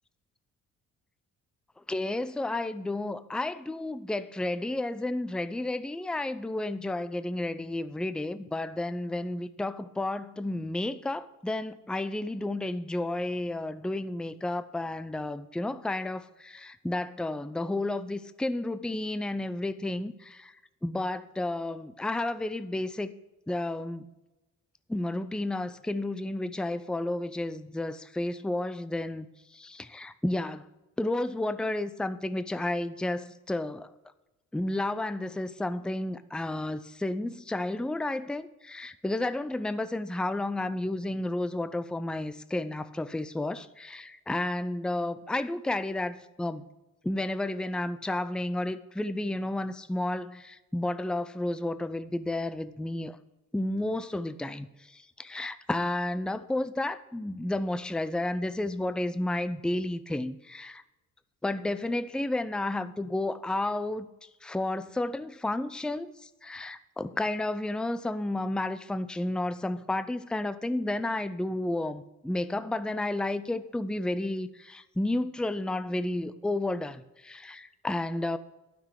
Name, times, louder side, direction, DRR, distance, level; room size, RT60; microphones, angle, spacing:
voice 1, 1.9-20.5 20.8-23.1 23.5-24.1 24.9-29.3 29.5-30.6 31.0-33.9 34.5-46.6 47.0-53.2 53.5-60.8 61.4-64.1 64.4-78.4, left 2 dB, 5° left, 0.5 m, -32 dB
12.0 x 6.1 x 6.5 m
cardioid pair, 90°, 30 cm